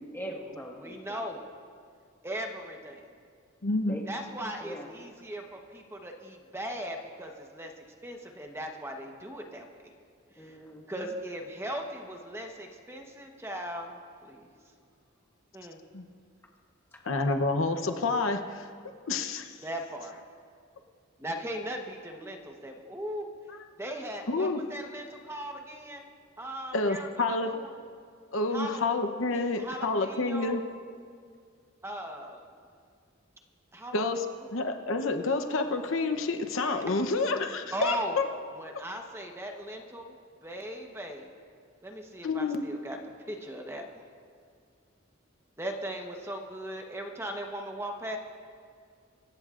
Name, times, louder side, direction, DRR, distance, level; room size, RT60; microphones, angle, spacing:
voice 1, 0.1-1.4 3.9-4.0 4.6-4.9 10.4-11.2, equal, 10° left, -1 dB, 1.6 m, -42 dB
voice 2, 0.8-1.4 2.2-3.0 4.1-7.7 8.0-9.7 10.4-10.5 10.9-14.0 14.2-14.5 15.5-15.8 19.6-20.2 21.2-23.3 23.8-26.1 26.4-27.7 28.5-28.8 29.3-30.6 31.8-32.4 33.7-34.0 37.7-38.2 38.6-40.1 40.4-41.3 41.8-43.0 43.3-44.0 45.6-48.2, right 1 dB, 15° right, 2 dB, 1.1 m, -38 dB
voice 3, 3.6-4.0 15.9-16.0 17.1-18.7 19.1-19.5 24.3-24.6 26.7-27.5 28.3-30.6 33.9-34.3 34.5-38.3 42.2-42.6, left 3 dB, 70° left, 6 dB, 0.9 m, -28 dB
25.5 x 15.0 x 2.5 m, 2.2 s
head